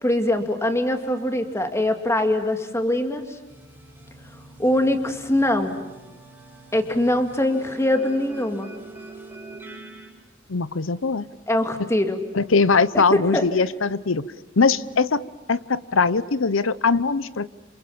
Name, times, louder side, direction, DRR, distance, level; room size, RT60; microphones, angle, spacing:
voice 1, 0.0-3.2 4.6-5.8 6.7-8.7 11.5-12.2 13.1-13.5, left 1 dB, 15° left, 6 dB, 2.3 m, -22 dB
sound 1, 3.5-10.1, right 2 dB, 10° right, 4.9 m, -43 dB
voice 2, 10.5-11.3 12.3-14.3 14.6-15.2 15.5-17.5, left 4 dB, 70° left, 17 dB, 0.8 m, -21 dB
27.5 x 27.5 x 7.1 m, 1.1 s
head